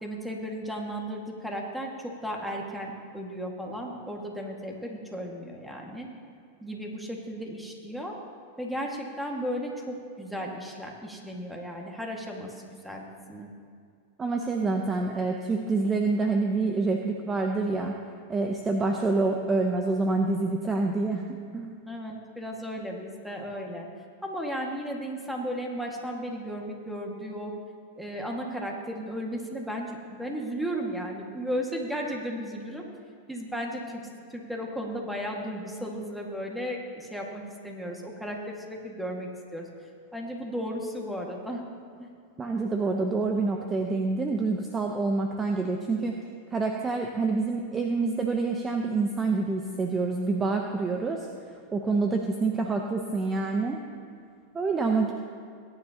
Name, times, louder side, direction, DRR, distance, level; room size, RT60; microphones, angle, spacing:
voice 1, 0.0-6.1 6.6-8.2 8.6-13.5 21.9-23.9 24.2-27.5 28.0-32.9 33.3-34.0 34.3-41.6 42.0-42.1, equal, 5° right, 0 dB, 1.8 m, -35 dB
voice 2, 14.2-17.9 18.3-21.3 21.5-21.8 42.4-46.2 46.5-51.3 51.7-53.8 54.5-55.1, right 3 dB, 20° right, 3 dB, 0.8 m, -27 dB
19.5 x 9.8 x 2.9 m, 2.3 s
hypercardioid pair, 115°, 0 cm